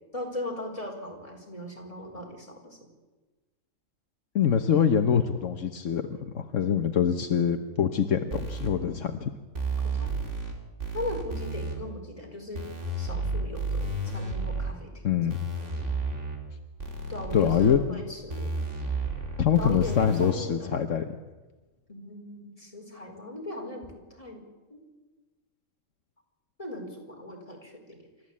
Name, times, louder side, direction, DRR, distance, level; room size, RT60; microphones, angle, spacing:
voice 1, 0.1-2.9 9.8-10.1 10.9-12.7 13.0-14.9 17.1-18.5 19.6-20.8 21.9-24.4 24.7-24.8 26.6-28.0, left 1 dB, 25° left, 0 dB, 4.8 m, -38 dB
voice 2, 4.3-9.3 15.0-15.4 17.3-18.0 19.4-21.0, left 8 dB, 75° left, 7 dB, 1.4 m, -24 dB
sound 1, 8.3-8.7 9.5-10.5 10.8-11.7 12.5-14.7 15.3-16.4 16.8-17.8 18.3-20.3, right 2 dB, 65° right, 3.6 m, -32 dB
28.5 x 13.5 x 8.6 m, 1.2 s
omnidirectional pair, 1.3 m